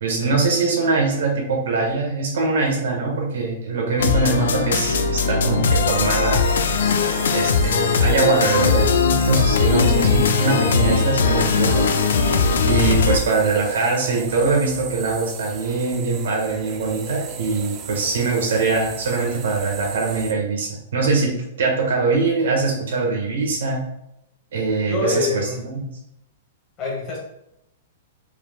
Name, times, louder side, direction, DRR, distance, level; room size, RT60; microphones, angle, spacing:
voice 1, 0.0-6.4 7.3-11.8 12.7-21.3 21.6-23.8 24.5-25.3 25.6-25.9, right 4 dB, 75° right, -1 dB, 1.5 m, -22 dB
sound 1, 4.0-13.2, left 5 dB, 85° left, 0.5 m, -19 dB
sound 2, 5.6-20.3, right 7 dB, 25° right, 0.4 m, -37 dB
voice 2, 24.9-25.6 26.8-27.2, left 3 dB, 25° left, -2 dB, 1.2 m, -25 dB
4.6 x 3.8 x 2.4 m, 0.81 s
hypercardioid pair, 170°, 0 cm